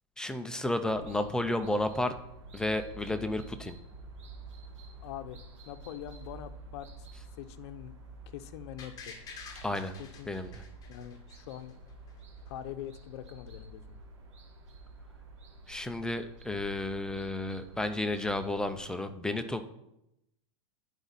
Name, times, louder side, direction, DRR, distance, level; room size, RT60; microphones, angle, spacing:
voice 1, 0.2-2.1 2.5-3.7 9.6-9.9 10.3-10.6 15.7-19.6, left 1 dB, 5° left, 9 dB, 0.4 m, -32 dB
sound 1, 0.9-18.8, right 2 dB, 90° right, 1.7 m, -49 dB
voice 2, 5.0-5.4 5.7-7.1 7.4-8.0 8.3-9.2 10.0-10.3 10.9-11.8 12.5-14.0, left 11 dB, 65° left, 12 dB, 0.7 m, -43 dB
sound 2, 8.8-11.7 12.1-12.2, left 5 dB, 25° left, 1.4 m, -48 dB
9.8 x 5.0 x 4.0 m, 0.85 s
supercardioid pair, 140°, 15 cm